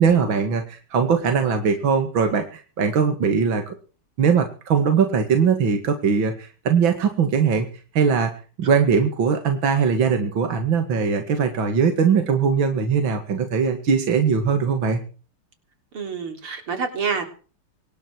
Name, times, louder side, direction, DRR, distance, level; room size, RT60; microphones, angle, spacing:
voice 1, 0.0-3.7 4.2-7.7 7.9-8.3 8.6-15.0, right 6 dB, 65° right, 6 dB, 2.8 m, -20 dB
voice 2, 15.9-17.3, right 5 dB, 80° right, 6 dB, 4.4 m, -27 dB
24.5 x 12.5 x 4.7 m, 0.38 s
omnidirectional pair, 2.4 m